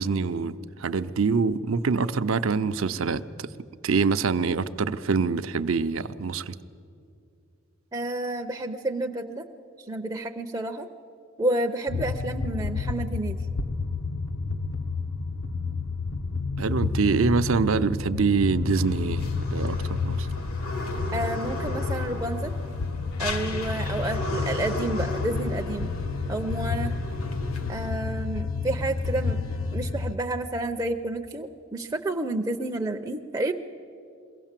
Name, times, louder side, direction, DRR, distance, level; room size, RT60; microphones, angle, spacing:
voice 1, 0.0-3.5 3.8-6.6 16.6-20.3, right 4 dB, 65° right, 0.6 m, -25 dB
voice 2, 7.9-9.5 9.9-10.9 11.4-13.4 21.1-22.5 23.2-25.9 26.3-27.0 27.7-29.4 29.7-33.5, right 2 dB, 15° right, 0.5 m, -30 dB
sound 1, 11.9-30.2, left 4 dB, 65° left, 0.7 m, -30 dB
sound 2, 18.7-27.9, left 2 dB, 85° left, 1.8 m, -36 dB
22.5 x 16.5 x 7.4 m
head